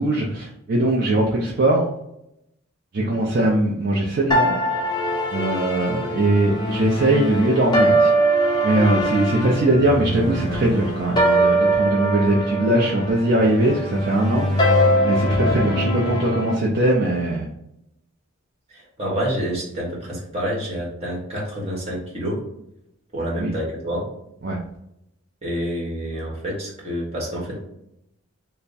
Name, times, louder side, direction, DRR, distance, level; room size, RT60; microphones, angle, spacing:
voice 1, 0.0-1.9 2.9-4.6 5.3-8.1 8.6-14.5 15.0-17.5 23.3-23.5 24.4-24.6, right 1 dB, 45° right, -3 dB, 0.5 m, -20 dB
sound 1, 4.3-16.5, right 1 dB, 20° left, 0.5 m, -22 dB
voice 2, 18.7-22.4 23.1-24.0 25.4-27.6, equal, 30° right, -4 dB, 1.1 m, -28 dB
3.4 x 2.1 x 4.0 m, 0.80 s
head